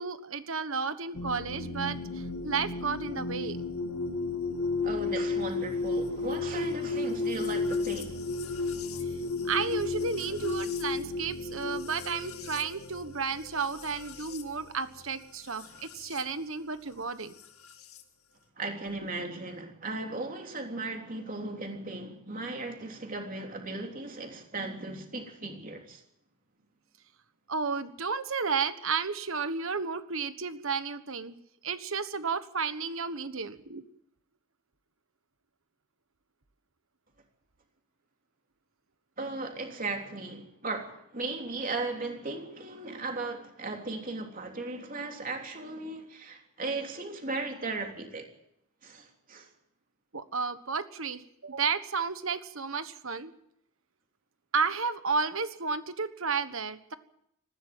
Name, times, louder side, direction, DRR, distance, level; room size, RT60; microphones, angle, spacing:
voice 1, 0.0-3.6 4.5-4.7 9.4-17.4 27.5-31.3 31.6-33.8 50.1-53.3 54.5-56.9, right 5 dB, 65° right, 1.4 m, -32 dB
sound 1, 1.1-16.2 17.4-18.0, left 3 dB, 80° left, 2.3 m, -34 dB
voice 2, 4.8-8.2 15.6-15.8 18.6-26.0 39.2-48.3 48.8-49.5, right 3 dB, 40° right, 3.3 m, -37 dB
20.0 x 15.5 x 9.1 m
head